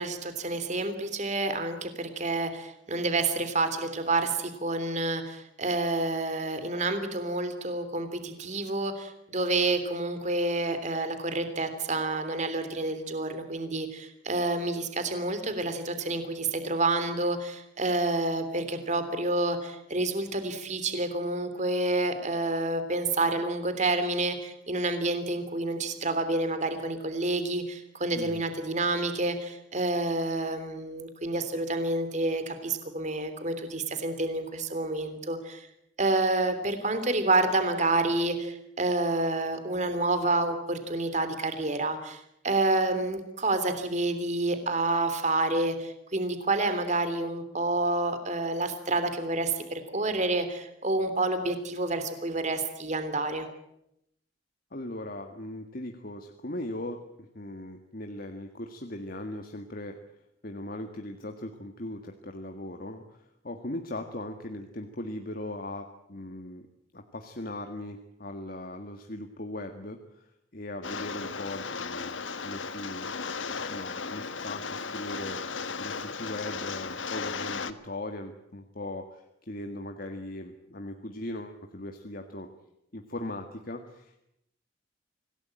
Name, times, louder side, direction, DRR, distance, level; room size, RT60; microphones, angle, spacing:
voice 1, 0.0-35.7 36.0-53.5, right 2 dB, 40° right, 9 dB, 3.1 m, -29 dB
voice 2, 54.7-60.0 60.4-66.7 66.9-70.3 70.5-73.1 73.7-75.4 75.8-82.5 82.9-84.2, left 1 dB, 50° left, 5 dB, 1.8 m, -39 dB
Rain, 70.8-77.7, left 5 dB, 80° left, 1.5 m, -35 dB
26.0 x 17.5 x 8.9 m, 0.80 s
head